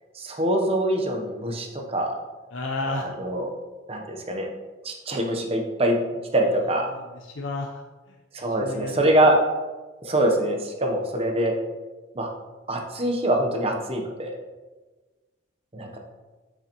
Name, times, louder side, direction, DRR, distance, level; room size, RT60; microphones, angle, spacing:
voice 1, 0.1-2.2 2.8-3.5 3.9-4.5 4.8-6.0 6.3-6.9 8.3-9.4 10.0-11.6 12.1-12.3 12.7-14.4 15.7-15.9, right 1 dB, 30° right, 2 dB, 0.8 m, -24 dB
voice 2, 2.5-3.1 6.9-7.8 8.6-9.0 15.9-16.0, left 2 dB, 75° left, 0 dB, 0.6 m, -32 dB
7.0 x 5.7 x 2.9 m, 1.3 s
head